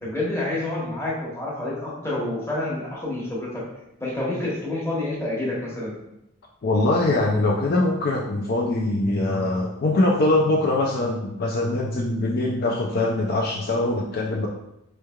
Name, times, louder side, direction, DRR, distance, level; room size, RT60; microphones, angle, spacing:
voice 1, 0.0-3.6 4.0-5.9, left 2 dB, 15° left, -6 dB, 1.0 m, -28 dB
voice 2, 6.6-14.5, left 2 dB, 50° left, -2 dB, 0.4 m, -22 dB
4.4 x 3.2 x 2.2 m, 0.85 s
head